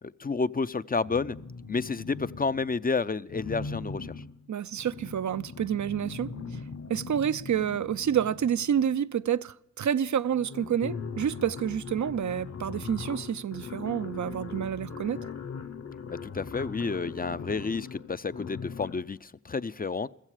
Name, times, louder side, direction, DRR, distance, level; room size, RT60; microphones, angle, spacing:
voice 1, 0.0-1.4 1.7-4.1 16.1-20.1, left 4 dB, 30° left, 0.5 m, -30 dB
sound 1, 1.0-2.8 3.3-8.9 9.9-10.0 10.2-19.1, left 5 dB, 60° left, 1.2 m, -40 dB
voice 2, 4.5-6.3 6.9-15.2, right 9 dB, 70° right, 0.5 m, -28 dB
15.5 x 15.0 x 4.8 m
cardioid pair, 65°, 30 cm